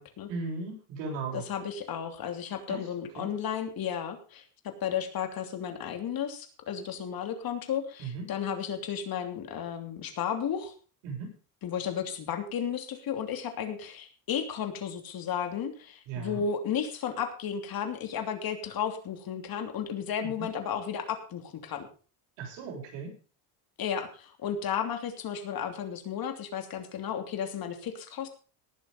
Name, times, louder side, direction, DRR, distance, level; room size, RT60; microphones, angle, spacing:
voice 1, 0.3-1.4 2.7-2.8 3.2-3.3 8.0-8.2 11.0-11.3 16.1-16.4 20.2-20.5 22.4-23.1, right 4 dB, 85° right, 0 dB, 7.1 m, -36 dB
voice 2, 1.3-10.7 11.6-21.9 23.8-28.3, left 8 dB, 50° left, 6 dB, 3.1 m, -33 dB
18.5 x 7.2 x 5.2 m, 0.37 s
cardioid pair, 115°, 44 cm